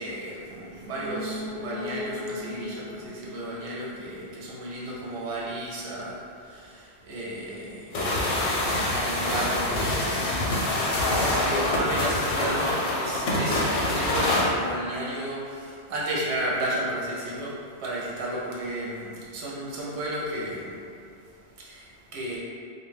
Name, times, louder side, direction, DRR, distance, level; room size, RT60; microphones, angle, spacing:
voice 1, 0.0-21.0 21.3-22.4, right 1 dB, 80° right, -5 dB, 0.8 m, -33 dB
sound 1, 0.8-4.5 4.8-4.9, left 2 dB, 5° right, 1.0 m, -38 dB
sound 2, 7.9-14.5, left 1 dB, 65° left, 0.7 m, -25 dB
2.1 x 2.1 x 3.3 m, 2.3 s
omnidirectional pair, 1.1 m